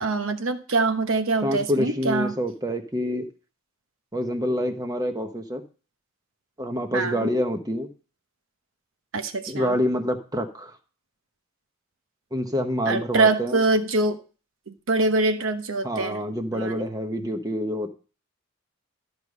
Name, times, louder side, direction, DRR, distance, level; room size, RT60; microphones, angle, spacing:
voice 1, 0.0-2.3 6.9-7.3 9.1-9.7 12.9-14.2 14.7-16.2 16.5-16.9, right 3 dB, 65° right, 1.0 m, -24 dB
voice 2, 1.4-3.3 4.1-5.6 6.6-7.9 9.5-10.7 12.3-13.6 15.8-17.9, equal, 15° right, 1.0 m, -27 dB
13.0 x 4.9 x 5.3 m
head